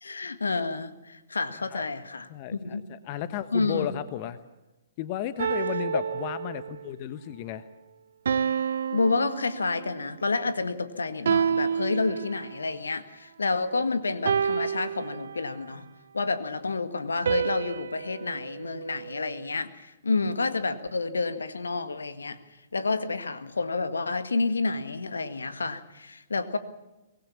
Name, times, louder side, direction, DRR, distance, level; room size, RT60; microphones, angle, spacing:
voice 1, 0.0-2.8 3.5-3.9 8.9-15.9 16.1-22.4 22.7-26.6, left 3 dB, 80° left, 11 dB, 1.7 m, -29 dB
voice 2, 2.3-4.4 5.0-7.6, left 11 dB, 40° left, 12 dB, 1.2 m, -34 dB
sound 1, 5.4-6.9 8.3-10.1 11.3-12.7 14.3-15.7 17.3-19.5, right 7 dB, 65° right, 0.8 m, -29 dB
24.0 x 19.0 x 7.1 m, 1.0 s
figure-of-eight pair, 120°, 0 cm